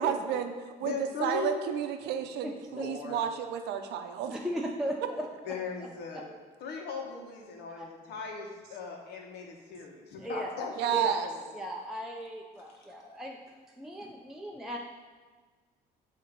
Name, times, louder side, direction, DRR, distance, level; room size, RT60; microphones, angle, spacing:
voice 1, 0.0-0.9 1.2-4.4 10.8-11.3, right 9 dB, 80° right, 7 dB, 0.6 m, -31 dB
voice 2, 0.8-1.6 2.7-3.2 5.5-6.2 6.6-11.5, left 5 dB, 75° left, 1 dB, 1.2 m, -38 dB
voice 3, 2.4-2.9 4.3-5.3 5.8-5.9 7.7-7.8 10.2-10.5 10.9-11.2 11.5-14.8, equal, 5° right, -1 dB, 0.5 m, -37 dB
7.7 x 2.9 x 5.1 m, 1.5 s
cardioid pair, 110°, 17 cm